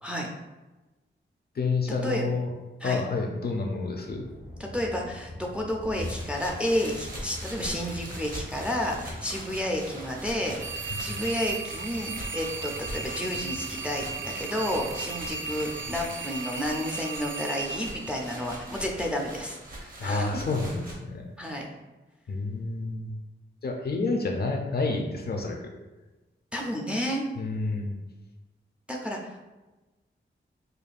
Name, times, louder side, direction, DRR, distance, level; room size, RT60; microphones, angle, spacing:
voice 1, 1.6-2.5 2.8-4.2 20.0-21.3 22.3-23.2 23.6-25.7 27.4-28.0, left 3 dB, 50° left, 2 dB, 0.4 m, -29 dB
sound 1, 4.1-16.0, left 1 dB, 80° left, 0.8 m, -43 dB
voice 2, 4.6-10.6 11.0-20.3 21.4-21.7 26.5-27.2 28.9-29.4, equal, 5° right, 0 dB, 0.4 m, -31 dB
sound 2, 5.9-20.9, right 1 dB, 45° right, 0.8 m, -42 dB
sound 3, 10.6-18.8, right 5 dB, 70° right, 0.4 m, -36 dB
5.1 x 2.3 x 2.4 m, 1.1 s
wide cardioid pair, 130°, 21 cm